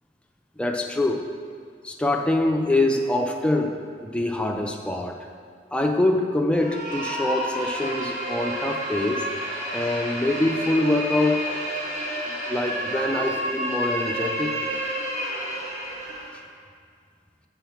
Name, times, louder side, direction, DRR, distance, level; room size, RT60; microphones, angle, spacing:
voice 1, 0.6-1.2 1.8-3.8 4.0-5.3 5.7-9.3 9.7-11.5 12.2-14.5, left 1 dB, 5° left, 2 dB, 0.4 m, -24 dB
sound 1, 6.5-16.4, equal, 45° right, 1.4 m, -30 dB
7.1 x 4.0 x 5.7 m, 2.1 s
head